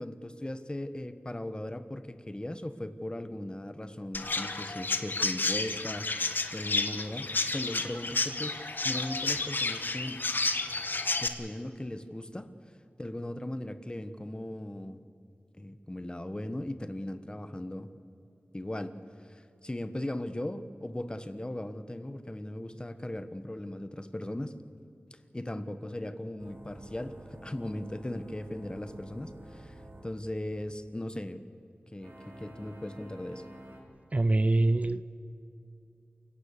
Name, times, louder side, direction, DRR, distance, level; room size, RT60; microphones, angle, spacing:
voice 1, 0.0-10.3 11.2-12.5 13.0-15.0 15.6-17.9 18.5-18.9 19.2-24.6 25.1-31.4 31.9-33.4, left 1 dB, 25° left, 11 dB, 1.3 m, -38 dB
Chirp tweet, 4.1-11.3, left 3 dB, 60° left, 1.4 m, -31 dB
sound 1, 26.4-30.1 32.0-33.8, right 1 dB, 85° right, 3.9 m, -49 dB
voice 2, 34.1-35.0, right 2 dB, 35° right, 14 dB, 0.6 m, -24 dB
28.0 x 16.5 x 6.8 m, 2.6 s
wide cardioid pair, 55°, 4 cm